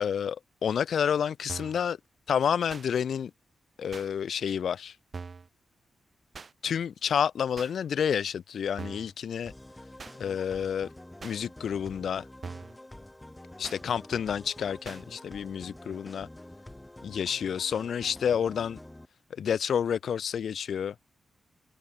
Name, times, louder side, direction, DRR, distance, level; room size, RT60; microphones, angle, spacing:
voice 1, 0.0-2.0 2.3-3.3 3.8-5.0 6.6-9.5 10.2-10.9 11.2-12.3 13.6-16.3 17.0-18.8 19.3-20.9, left 8 dB, 70° left, 0.5 m, -29 dB
sound 1, 1.5-1.8 2.7-2.9 3.9-4.1 5.1-5.5 6.3-6.5 7.6-7.7 8.8-9.1 10.0-10.2 11.2-11.4 12.4-12.8 13.6-13.8 14.8-15.0, right 4 dB, 40° right, 1.0 m, -42 dB
sound 2, 9.5-19.0, left 1 dB, 10° left, 0.5 m, -48 dB
wide cardioid pair, 135°, 0 cm